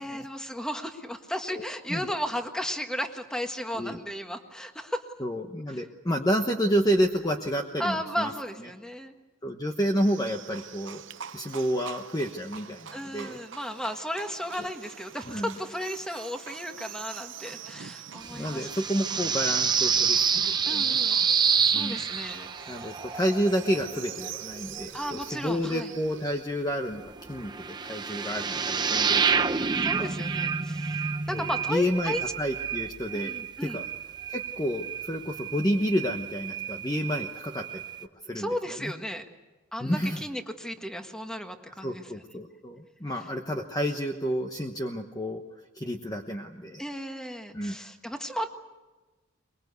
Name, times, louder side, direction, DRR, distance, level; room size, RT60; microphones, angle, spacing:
voice 1, 0.0-5.0 5.7-5.8 7.8-9.1 12.9-18.7 20.6-23.0 24.9-25.9 29.8-32.2 33.1-33.8 38.3-39.2 39.7-42.1 46.8-48.5, equal, 5° left, 5 dB, 1.6 m, -35 dB
voice 2, 5.2-8.3 9.4-11.0 11.3-13.4 15.3-15.5 18.3-21.0 21.7-22.0 22.7-30.1 31.3-33.3 33.6-33.9 34.3-37.8 38.2-38.5 38.8-38.9 39.8-40.2 41.8-45.4 45.7-46.8 47.5-47.8, equal, 20° left, 4 dB, 1.1 m, -30 dB
Livestock farm animals working animals, 10.0-26.4, right 8 dB, 60° right, 0.7 m, -45 dB
sound 1, 18.2-25.4 26.9-38.0, right 6 dB, 20° right, 0.8 m, -29 dB
23.5 x 22.5 x 8.2 m, 1.2 s
head